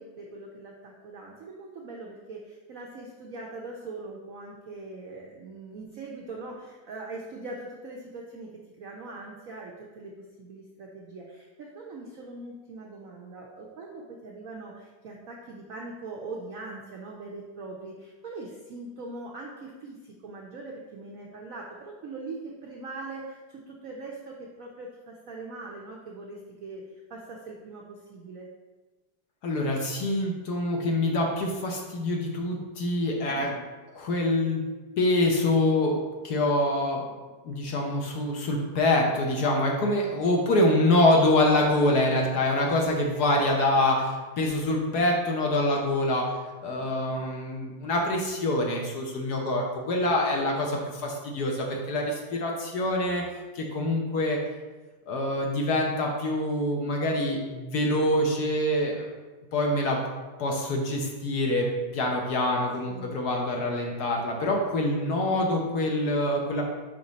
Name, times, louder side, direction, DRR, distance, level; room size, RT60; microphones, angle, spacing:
voice 1, 0.0-8.5 8.8-10.1 10.4-26.8 27.1-28.5 33.3-33.6 46.8-47.3 62.9-63.1, right 3 dB, 80° right, -1 dB, 0.7 m, -41 dB
voice 2, 29.4-33.5 34.0-34.6 35.0-36.0 36.2-37.0 37.4-46.3 46.6-53.2 53.5-54.4 55.1-59.1 59.5-60.0 60.4-61.7 61.9-66.6, left 1 dB, 60° left, 0 dB, 1.1 m, -25 dB
5.3 x 5.1 x 4.0 m, 1.3 s
omnidirectional pair, 2.4 m